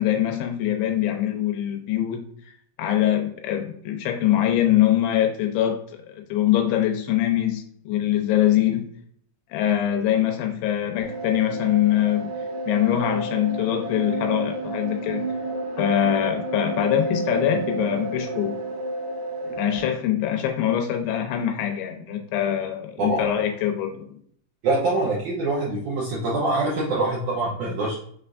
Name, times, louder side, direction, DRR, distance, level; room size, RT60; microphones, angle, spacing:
voice 1, 0.0-2.2 2.8-8.9 9.5-12.3 12.7-15.3 15.8-18.6 19.6-24.2, left 11 dB, 85° left, 3 dB, 2.8 m, -23 dB
sound 1, 11.0-19.9, right 2 dB, 60° right, 2.0 m, -31 dB
voice 2, 24.6-27.9, right 2 dB, 75° right, -5 dB, 1.8 m, -24 dB
6.1 x 3.3 x 2.5 m, 0.64 s
omnidirectional pair, 4.6 m